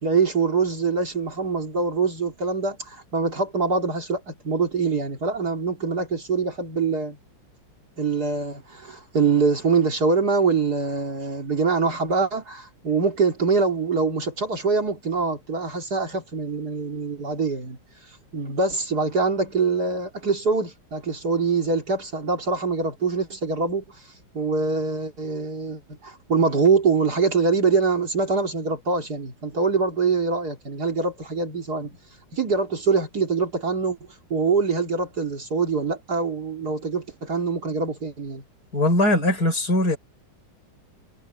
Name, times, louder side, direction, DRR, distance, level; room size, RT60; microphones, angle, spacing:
voice 1, 0.0-7.2 8.0-17.8 18.3-24.0 24.3-31.9 32.3-34.0 34.3-38.4, right 4 dB, 45° right, 3.2 m, -24 dB
voice 2, 38.7-40.0, left 1 dB, 45° left, 6.1 m, -20 dB
omnidirectional pair, 2.3 m